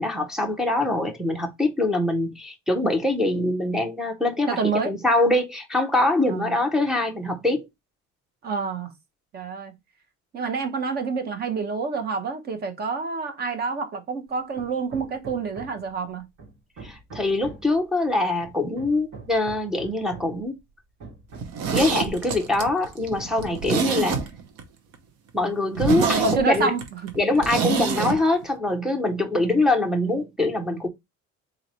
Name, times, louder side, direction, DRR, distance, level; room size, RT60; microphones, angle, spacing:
voice 1, 0.0-7.7 16.8-20.6 21.7-24.2 25.3-26.7 27.2-30.9, left 2 dB, ahead, 0.6 m, -23 dB
voice 2, 4.5-4.9 6.3-6.6 8.4-8.9 9.3-9.7 10.3-16.3 26.0-27.2, right 5 dB, 30° right, 0.9 m, -28 dB
Hammer, 14.6-16.0 16.4-17.8 18.4-20.4 21.0-21.9, right 4 dB, 75° right, 2.4 m, -43 dB
Zipper (clothing), 21.3-24.6 24.9-25.0 25.4-25.5 25.7-28.2 28.4-28.5, right 6 dB, 55° right, 1.0 m, -26 dB
4.0 x 3.2 x 4.1 m
cardioid pair, 175°, 30 cm